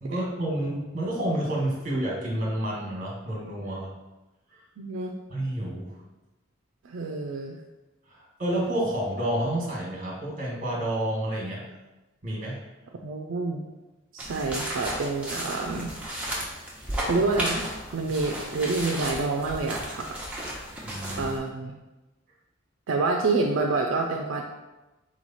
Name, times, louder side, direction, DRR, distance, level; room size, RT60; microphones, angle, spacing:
voice 1, 0.0-3.9 4.5-4.6 5.3-6.0 8.1-11.6 12.2-12.6 20.8-21.3, right 1 dB, 40° right, -3 dB, 1.3 m, -29 dB
voice 2, 4.8-5.1 6.8-7.6 13.0-13.6 14.1-15.9 17.0-17.7 17.9-20.1 21.2-21.7 22.9-24.4, right 3 dB, 75° right, 1 dB, 0.4 m, -27 dB
sound 1, 14.2-21.4, right 1 dB, 5° right, 1.0 m, -34 dB
4.1 x 3.1 x 4.1 m, 1.1 s
head